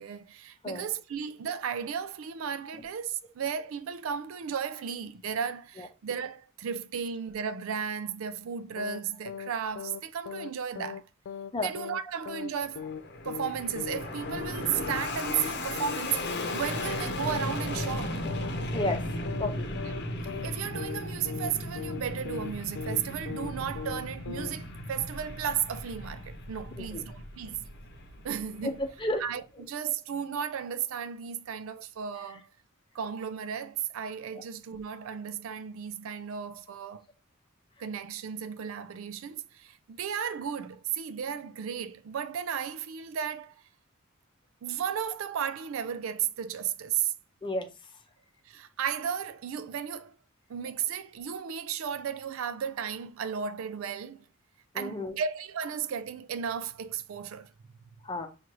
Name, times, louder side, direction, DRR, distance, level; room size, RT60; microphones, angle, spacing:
voice 1, 0.0-11.0 11.6-12.9 13.2-18.2 20.4-27.7 28.2-28.7 29.2-32.5 32.9-37.0 37.8-43.6 44.6-47.1 48.4-50.2 50.5-54.2 54.7-57.5, right 8 dB, 70° right, 0.4 m, -34 dB
sound 1, 8.8-9.0 9.3-9.5 9.8-10.0 10.3-10.5 10.8-11.0 11.3-11.5 11.8-12.0 12.3-12.5 12.8-13.0 13.3-13.5 13.8-14.0 14.3-14.5 14.8-15.0 15.3-15.5 15.8-16.0 16.3-16.5 16.8-17.0 17.3-17.5 17.8-18.0 18.3-18.5 18.8-19.0 19.3-19.5 19.8-20.0 20.3-20.5 20.8-21.0 21.3-21.5 21.8-22.0 22.3-22.5 22.8-23.0 23.3-23.5 23.8-24.0 24.3-24.5, left 7 dB, 75° left, 0.3 m, -38 dB
Fixed-wing aircraft airplane, 12.6-29.2, left 1 dB, 55° left, 0.8 m, -36 dB
voice 2, 19.4-19.7 26.8-27.0 28.6-29.2 47.4-47.7 54.7-55.2 58.0-58.3, left 1 dB, 25° left, 0.7 m, -32 dB
6.1 x 2.5 x 2.9 m
head